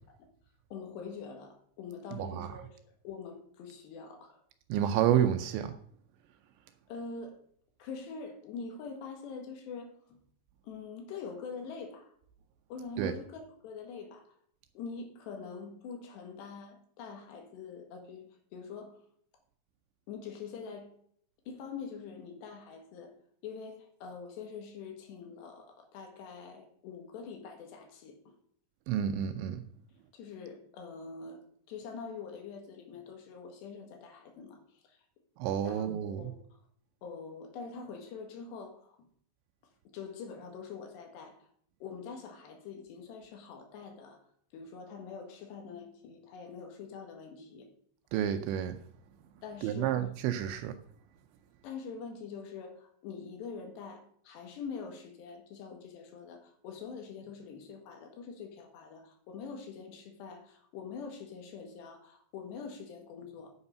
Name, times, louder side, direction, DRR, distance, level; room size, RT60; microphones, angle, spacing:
voice 1, 0.7-4.4 6.9-7.4 7.8-10.2 10.6-12.1 12.7-14.3 14.8-18.3 18.5-19.0 20.1-20.9 21.5-23.1 23.4-28.2 30.1-31.4 31.7-35.0 35.6-36.4 37.0-39.1 39.9-41.5 41.8-44.2 44.5-47.7 49.4-50.0 51.6-63.5, left 5 dB, 65° left, 3.5 m, -44 dB
voice 2, 2.2-2.5 4.7-5.7 13.0-13.1 28.9-29.6 35.4-36.3 48.1-48.7 49.6-50.7, right 10 dB, 80° right, 2.7 m, -29 dB
9.7 x 8.8 x 5.5 m
omnidirectional pair, 5.6 m